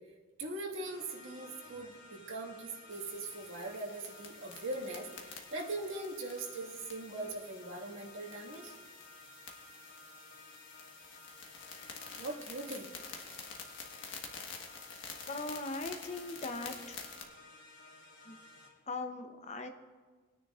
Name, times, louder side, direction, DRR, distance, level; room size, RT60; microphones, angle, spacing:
voice 1, 0.4-8.7 12.2-12.9, right 2 dB, 65° right, -3 dB, 1.8 m, -41 dB
sound 1, 0.8-18.7, left 2 dB, 85° left, 3.3 m, -55 dB
sound 2, 2.9-17.2, left 5 dB, 65° left, 1.4 m, -49 dB
voice 2, 15.3-17.0 18.2-18.4 18.9-19.7, left 3 dB, 35° left, 6 dB, 0.8 m, -39 dB
21.0 x 9.9 x 2.5 m, 1.5 s
head